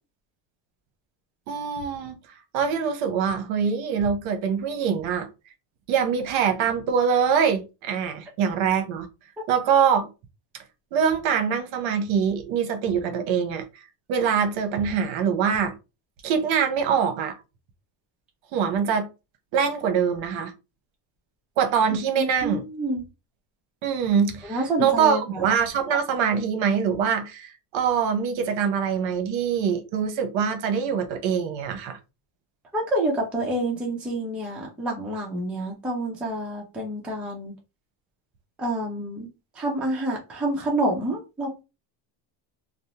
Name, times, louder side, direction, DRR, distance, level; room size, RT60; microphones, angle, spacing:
voice 1, 1.5-2.1 2.5-5.3 5.9-9.1 9.5-10.1 10.9-15.7 16.2-17.4 18.5-19.1 19.5-20.5 21.6-22.6 23.8-32.0, right 7 dB, 65° right, 0.8 m, -24 dB
voice 2, 22.2-23.0 24.5-25.4 32.7-37.5 38.6-39.3 39.6-41.6, right 1 dB, 5° right, 0.4 m, -28 dB
2.5 x 2.0 x 2.8 m
cardioid pair, 145°, 50 cm